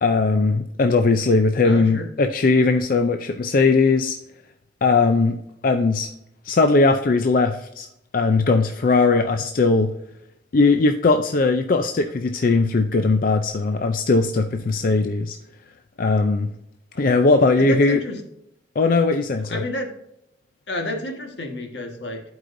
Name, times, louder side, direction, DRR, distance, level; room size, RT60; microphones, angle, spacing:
voice 1, 0.0-4.2 4.8-5.4 5.6-6.1 6.5-7.9 8.1-9.9 10.5-15.4 16.0-16.5 17.0-18.0 18.8-19.6, left 3 dB, 50° left, 6 dB, 0.4 m, -19 dB
voice 2, 1.6-2.1 16.9-17.0 17.6-18.2 19.4-19.9 20.7-22.2, left 1 dB, 80° left, 2 dB, 1.5 m, -30 dB
11.5 x 4.9 x 2.6 m, 0.80 s
head